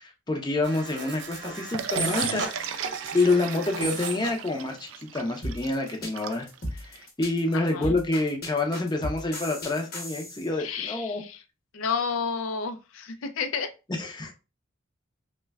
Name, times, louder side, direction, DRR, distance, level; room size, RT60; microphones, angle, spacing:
voice 1, 0.0-11.2 14.0-14.3, left 2 dB, 20° left, 0.5 m, -28 dB
sound 1, 0.6-4.5, right 3 dB, 60° right, 0.8 m, -34 dB
sound 2, 1.7-7.1, right 7 dB, 85° right, 0.4 m, -36 dB
sound 3, 5.4-10.5, left 1 dB, 50° left, 1.0 m, -35 dB
voice 2, 7.5-7.9 10.6-11.4 11.7-13.7 14.0-14.1, left 5 dB, 90° left, 0.4 m, -31 dB
3.1 x 2.2 x 3.3 m
head